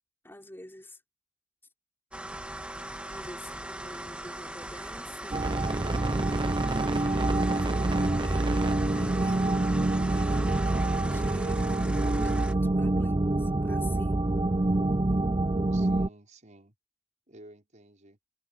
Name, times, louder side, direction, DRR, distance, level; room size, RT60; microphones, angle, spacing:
voice 1, 0.2-1.0 2.8-5.5 6.9-9.5 10.1-14.2, left 1 dB, 10° left, 5.6 m, -48 dB
sound 1, 2.1-12.5, right 1 dB, 5° right, 1.6 m, -40 dB
sound 2, 5.3-16.1, right 2 dB, 25° right, 0.5 m, -26 dB
voice 2, 12.9-13.2 15.7-16.7 17.3-18.2, right 2 dB, 40° right, 5.5 m, -53 dB
head